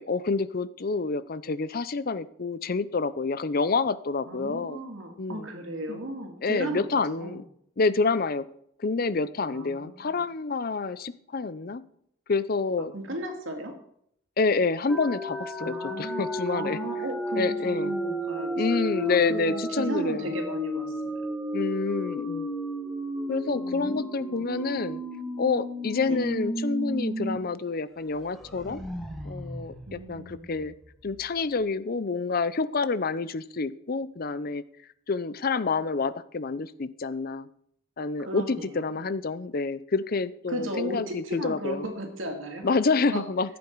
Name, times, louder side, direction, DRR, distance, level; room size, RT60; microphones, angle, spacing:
voice 1, 0.0-4.8 5.2-5.5 5.9-6.0 6.4-7.4 7.8-8.5 8.8-11.8 12.3-12.9 14.4-16.8 17.3-17.9 18.6-20.3 21.5-22.5 23.3-25.0 25.4-28.8 29.2-30.7 31.0-34.6 35.1-37.5 38.0-41.8 42.6-43.6, left 4 dB, 45° left, 15 dB, 0.6 m, -28 dB
voice 2, 4.3-7.4 9.5-10.2 12.9-13.8 15.6-21.2 23.5-24.4 26.1-26.3 29.9-30.5 38.2-39.0 40.5-42.8 43.1-43.2, right 1 dB, 70° right, 3 dB, 2.5 m, -36 dB
sound 1, 14.9-27.4 27.7-27.8 28.2-30.9, equal, ahead, 1.6 m, -33 dB
14.5 x 8.6 x 4.7 m, 0.69 s
head